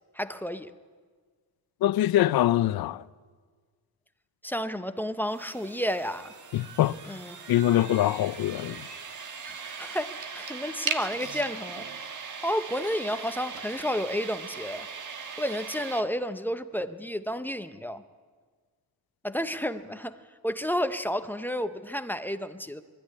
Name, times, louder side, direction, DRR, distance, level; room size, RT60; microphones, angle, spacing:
voice 1, 0.2-0.7 4.4-6.3 7.1-7.3 9.5-11.9 12.4-14.9 15.4-18.0 19.2-20.2 20.4-22.8, equal, 5° left, 0.5 m, -31 dB
voice 2, 1.8-3.0 6.5-7.0 7.5-8.9, left 13 dB, 70° left, 0.6 m, -24 dB
sound 1, 5.3-16.0, right 6 dB, 50° right, 1.5 m, -39 dB
24.0 x 13.5 x 9.7 m
wide cardioid pair, 180°, 38 cm